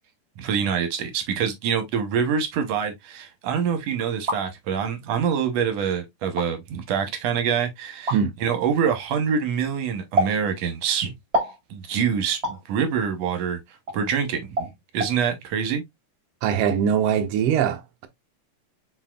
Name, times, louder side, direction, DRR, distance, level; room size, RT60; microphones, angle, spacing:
voice 1, 0.4-11.1 11.7-13.6 13.9-15.8, right 7 dB, 65° right, 1.8 m, -25 dB
sound 1, 4.0-4.4 5.3-5.4 6.2-6.5 8.1-8.2 10.2-10.4 11.3-11.6 12.4-12.6 13.9-14.0 14.6-14.7 15.0-15.1, equal, 30° right, 1.3 m, -25 dB
voice 2, 16.4-18.1, right 8 dB, 85° right, 1.4 m, -22 dB
4.7 x 4.0 x 2.3 m
omnidirectional pair, 3.6 m